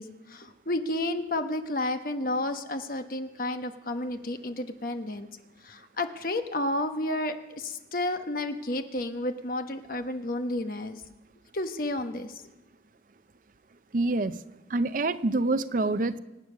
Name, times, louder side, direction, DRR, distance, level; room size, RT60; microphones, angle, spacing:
voice 1, 0.0-5.3 5.6-11.0 11.5-12.3, left 1 dB, 50° left, 7 dB, 1.1 m, -31 dB
voice 2, 13.9-14.4 14.7-16.2, right 2 dB, 45° right, 13 dB, 0.5 m, -26 dB
25.5 x 8.8 x 6.3 m, 1.0 s
head